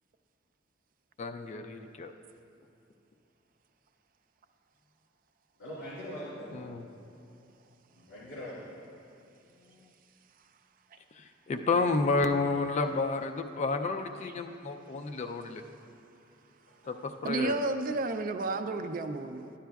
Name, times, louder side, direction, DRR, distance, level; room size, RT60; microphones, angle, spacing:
voice 1, 1.2-2.1 6.5-6.8 11.2-15.6 16.9-17.5, left 3 dB, 35° left, 5 dB, 0.3 m, -31 dB
voice 2, 5.6-6.9 7.9-8.8 16.7-16.9, equal, 75° left, -8 dB, 2.2 m, -43 dB
voice 3, 17.2-19.5, right 2 dB, 45° right, 8 dB, 0.4 m, -31 dB
11.5 x 10.0 x 2.3 m, 2.6 s
head